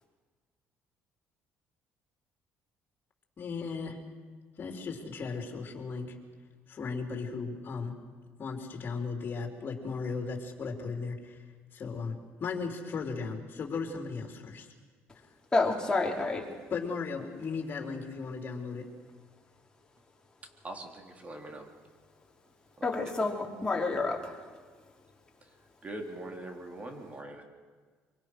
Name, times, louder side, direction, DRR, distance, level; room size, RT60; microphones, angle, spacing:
voice 1, 3.4-4.0 4.6-6.2 6.7-7.9 8.4-11.4 11.7-14.7 15.1-15.3 16.7-18.9, left 4 dB, 45° left, 2 dB, 4.4 m, -36 dB
voice 2, 15.5-16.5 22.8-24.4, left 3 dB, 15° left, -1 dB, 4.3 m, -29 dB
voice 3, 20.6-21.7 22.8-23.1 23.4-23.6 25.4-25.5 25.8-27.4, right 1 dB, 30° right, 4 dB, 3.7 m, -43 dB
24.5 x 24.0 x 6.5 m, 1.5 s
cardioid pair, 95°, 5 cm